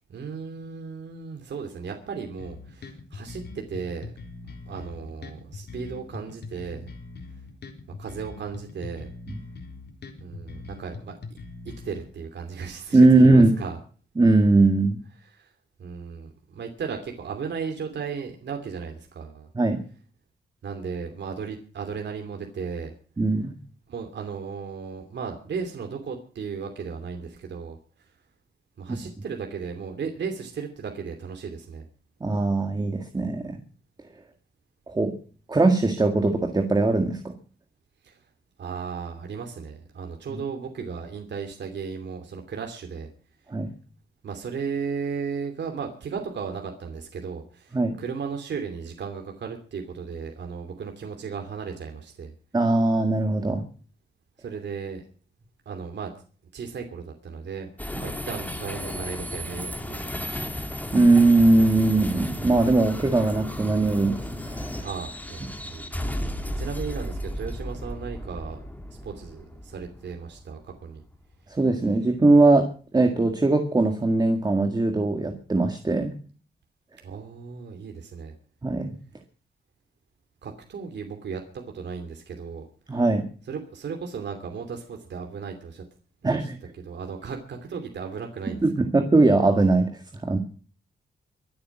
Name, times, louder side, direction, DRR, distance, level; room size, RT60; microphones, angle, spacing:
voice 1, 0.1-4.1 4.7-6.9 8.0-9.1 10.2-11.2 11.8-13.8 15.2-15.5 15.8-19.5 20.6-22.9 23.9-27.8 28.8-31.8 38.0-38.2 38.6-43.1 44.2-52.3 54.4-55.0 55.7-56.1 56.5-57.7 57.9-60.6 64.8-65.9 66.2-68.6 69.0-71.0 77.0-78.3 80.4-82.7 83.5-85.8 86.2-86.5 86.8-88.6, right 5 dB, 75° right, 3 dB, 2.8 m, -35 dB
sound 1, 2.4-12.0, left 4 dB, 70° left, 3.7 m, -41 dB
voice 2, 12.9-13.5 14.2-15.0 19.6-19.8 23.2-23.5 32.2-33.6 34.9-35.1 35.5-37.4 43.5-43.7 47.7-48.0 52.5-53.6 60.9-64.2 64.5-64.8 71.5-72.7 72.9-76.1 78.6-78.9 82.9-83.3 86.2-86.6 88.6-89.9 90.2-90.4, right 2 dB, 20° right, 5 dB, 1.9 m, -20 dB
sound 2, 57.8-71.2, equal, 10° left, 2.2 m, -34 dB
24.0 x 8.7 x 6.0 m, 0.42 s
wide cardioid pair, 135°, 18 cm